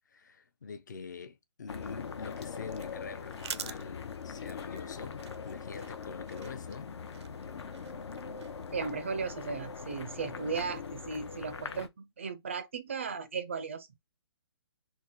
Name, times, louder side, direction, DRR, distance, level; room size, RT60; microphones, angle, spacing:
voice 1, 0.1-6.9, left 5 dB, 45° left, 0.5 m, -45 dB
sound 1, 1.7-11.9, left 6 dB, 80° left, 0.7 m, -42 dB
sound 2, 2.0-8.9, right 7 dB, 90° right, 0.5 m, -48 dB
voice 2, 8.7-13.9, right 5 dB, 30° right, 0.4 m, -36 dB
3.8 x 2.3 x 2.9 m
hypercardioid pair, 175°, 14 cm